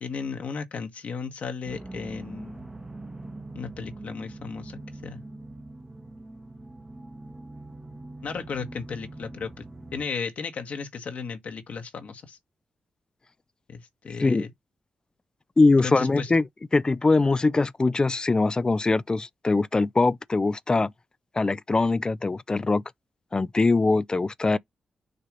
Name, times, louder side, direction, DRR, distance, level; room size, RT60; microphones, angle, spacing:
voice 1, 0.0-2.6 3.5-5.2 8.2-9.7 9.9-12.4 13.7-14.5 15.8-16.3, left 5 dB, 65° left, 1.4 m, -35 dB
sound 1, 1.6-10.1, right 2 dB, 20° right, 1.0 m, -42 dB
voice 2, 15.6-16.5 16.7-20.9 21.3-22.8 23.3-24.6, left 3 dB, 30° left, 0.5 m, -22 dB
6.7 x 2.8 x 5.1 m
supercardioid pair, 45°, 3 cm